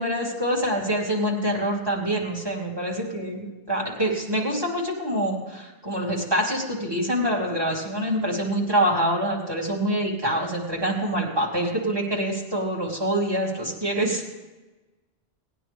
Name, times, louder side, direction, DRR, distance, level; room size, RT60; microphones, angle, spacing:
voice 1, 0.0-14.2, right 1 dB, 20° right, -3 dB, 2.7 m, -25 dB
18.5 x 9.7 x 3.4 m, 1.2 s
omnidirectional pair, 1.1 m